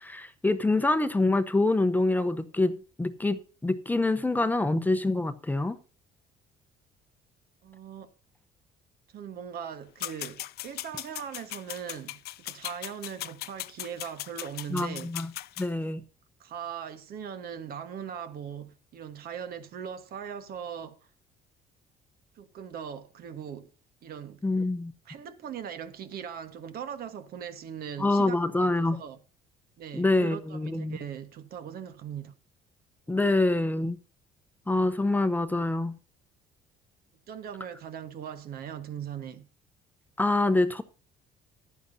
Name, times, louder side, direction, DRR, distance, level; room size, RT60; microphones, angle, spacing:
voice 1, 0.0-5.8 14.7-15.3 15.6-16.0 24.4-24.9 28.0-29.0 29.9-31.0 33.1-34.0 34.7-36.0 40.2-40.8, left 2 dB, 10° left, 0.8 m, -26 dB
voice 2, 7.6-8.1 9.1-15.1 16.4-21.0 22.3-23.7 24.0-24.4 25.0-29.2 29.8-32.3 37.3-39.5, right 8 dB, 65° right, 1.4 m, -40 dB
sound 1, 10.0-15.7, left 16 dB, 70° left, 0.4 m, -39 dB
15.0 x 11.0 x 2.7 m
cardioid pair, 110°, 17 cm